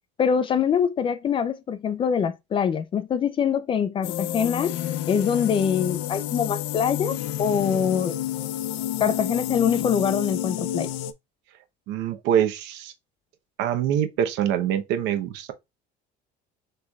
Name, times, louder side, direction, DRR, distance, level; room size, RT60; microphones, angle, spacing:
voice 1, 0.2-4.8 5.1-8.2 9.0-10.9, left 7 dB, 30° left, 0.4 m, -24 dB
sound 1, 4.0-11.1, left 12 dB, 85° left, 0.5 m, -30 dB
voice 2, 11.9-12.9 13.6-15.5, right 10 dB, 70° right, 0.9 m, -24 dB
6.5 x 3.2 x 2.3 m
cardioid pair, 155°, 19 cm